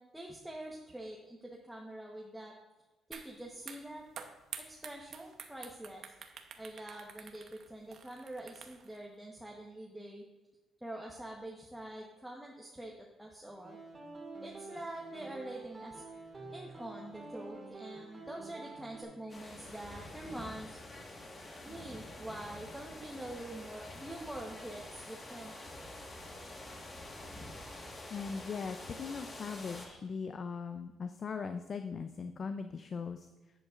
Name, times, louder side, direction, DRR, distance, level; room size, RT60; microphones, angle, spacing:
voice 1, 0.0-2.5 3.1-4.1 4.6-6.0 6.6-10.3 10.8-13.8 14.4-16.0 16.5-20.8 21.6-25.5, right 1 dB, 5° right, -2 dB, 1.0 m, -45 dB
sound 1, 3.1-3.3 3.6-9.0, right 7 dB, 65° right, 0.8 m, -48 dB
sound 2, 13.6-19.0, right 3 dB, 25° right, 2.2 m, -48 dB
sound 3, 19.3-29.9, left 1 dB, 35° left, 1.5 m, -47 dB
voice 2, 28.1-33.3, left 5 dB, 50° left, 8 dB, 0.4 m, -39 dB
11.0 x 7.9 x 2.5 m, 1.1 s
cardioid pair, 90°, 0 cm